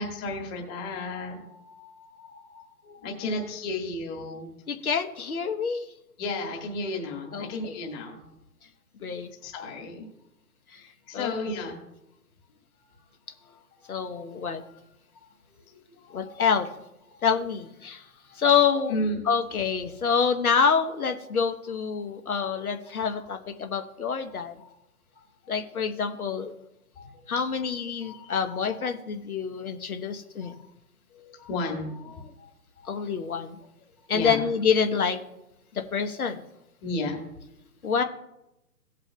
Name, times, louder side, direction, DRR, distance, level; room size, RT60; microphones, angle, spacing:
voice 1, 0.0-4.5 6.2-8.3 9.4-10.1 10.8-11.8 12.8-13.0 13.4-14.2 14.7-14.8 15.1-16.4 17.1-17.5 17.8-18.4 18.9-19.3 23.0-23.3 24.3-24.7 25.1-25.5 26.9-27.5 28.0-28.6 30.4-30.6 31.1-32.5 32.8-33.0 34.0-34.5 36.8-37.2, left 2 dB, 15° left, 1 dB, 1.6 m, -35 dB
voice 2, 4.7-5.9 7.3-7.8 9.0-9.3 10.7-10.8 11.1-11.3 13.9-14.6 16.1-16.7 17.2-18.0 18.3-18.9 19.3-24.6 25.5-26.5 27.3-30.5 32.9-33.6 34.1-35.2 35.7-36.4 37.8-38.0, left 6 dB, 65° left, 6 dB, 1.1 m, -26 dB
17.5 x 8.0 x 2.2 m, 0.88 s
hypercardioid pair, 150°, 48 cm